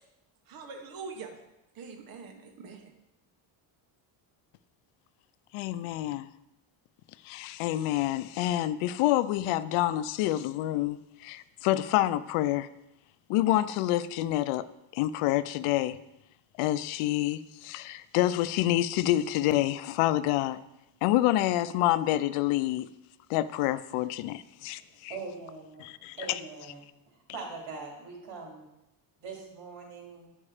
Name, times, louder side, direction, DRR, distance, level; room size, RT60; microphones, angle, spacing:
voice 1, 0.5-1.4 1.7-2.9, right 5 dB, 45° right, 1.1 m, -43 dB
voice 2, 5.5-6.3 7.2-12.7 13.3-14.7 14.9-16.0 16.6-20.6 21.0-22.9 23.3-25.1 25.8-26.4, left 14 dB, 85° left, 0.6 m, -27 dB
voice 3, 24.6-28.6 29.2-30.3, right 4 dB, 70° right, 3.1 m, -43 dB
9.8 x 5.4 x 4.9 m
cardioid pair, 125°, 50 cm